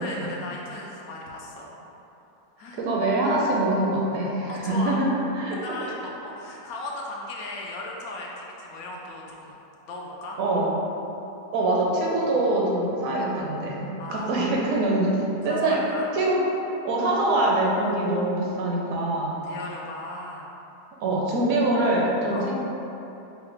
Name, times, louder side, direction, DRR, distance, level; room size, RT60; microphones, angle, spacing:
voice 1, 0.0-1.7 2.6-2.8 4.5-5.0 5.5-9.6 9.9-10.4 14.0-14.6 15.4-16.1 19.4-20.5 22.3-22.5, left 2 dB, 75° left, -2 dB, 1.0 m, -37 dB
voice 2, 2.7-5.1 5.4-5.6 10.4-10.7 11.5-15.2 15.4-15.8 16.1-16.4 16.8-19.4 21.0-22.6, right 2 dB, 70° right, -3 dB, 1.0 m, -24 dB
4.7 x 2.1 x 3.3 m, 3.0 s
omnidirectional pair, 1.6 m